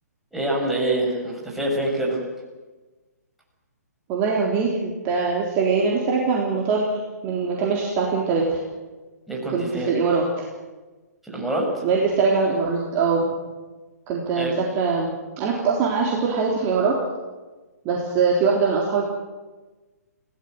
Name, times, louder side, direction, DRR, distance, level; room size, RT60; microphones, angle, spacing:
voice 1, 0.3-2.2 9.3-9.9 11.2-11.7 14.3-14.5, right 1 dB, ahead, -4 dB, 6.6 m, -25 dB
voice 2, 4.1-8.6 9.5-10.5 11.8-13.3 14.1-15.1 15.4-17.0 17.9-19.0, right 4 dB, 25° right, -2 dB, 3.6 m, -22 dB
29.5 x 17.0 x 7.9 m, 1.3 s
figure-of-eight pair, 125°, 9 cm